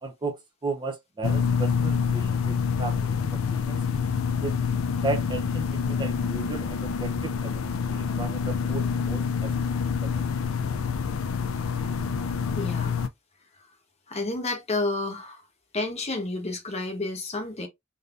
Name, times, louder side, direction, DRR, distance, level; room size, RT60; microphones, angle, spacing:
voice 1, 0.0-3.8 4.4-4.6 5.0-10.2, right 3 dB, 20° right, 0.5 m, -35 dB
sound 1, 1.2-13.1, left 6 dB, 75° left, 0.4 m, -27 dB
voice 2, 12.5-12.9 14.1-15.4 15.7-17.7, left 2 dB, 30° left, 1.0 m, -30 dB
3.5 x 2.6 x 2.4 m
head